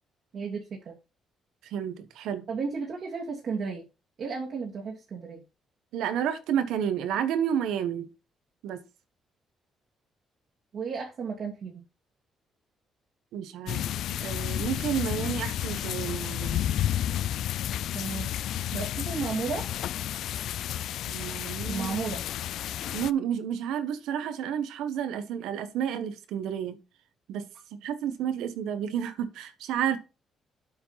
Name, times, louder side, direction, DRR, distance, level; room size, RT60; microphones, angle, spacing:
voice 1, 0.3-1.0 2.5-3.8 4.2-5.4 10.7-11.8 17.9-18.3 18.7-19.7 21.7-22.2, right 5 dB, 60° right, 2.5 m, -33 dB
voice 2, 1.6-2.5 5.9-8.1 8.6-8.8 13.3-13.8 14.2-16.6 21.1-22.0 22.9-26.8 27.3-27.4 27.8-30.0, right 9 dB, 90° right, 1.2 m, -30 dB
sound 1, 13.7-23.1, left 11 dB, 75° left, 0.4 m, -31 dB
8.2 x 4.8 x 5.7 m
cardioid pair, 90°, 0 cm